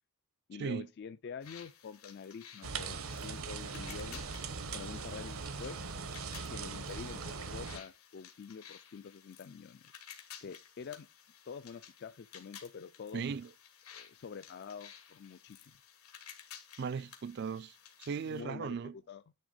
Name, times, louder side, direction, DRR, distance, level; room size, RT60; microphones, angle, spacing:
voice 1, 0.5-4.4 4.7-5.8 6.5-9.8 10.4-11.1 11.5-13.3 13.9-15.8 18.2-19.3, left 6 dB, 50° left, 0.3 m, -47 dB
sound 1, 1.4-18.4, left 8 dB, 85° left, 1.9 m, -55 dB
sound 2, 2.6-7.8, right 5 dB, 75° right, 1.0 m, -40 dB
voice 2, 13.1-13.5 16.8-18.9, right 6 dB, 50° right, 0.3 m, -37 dB
10.0 x 3.4 x 5.0 m
head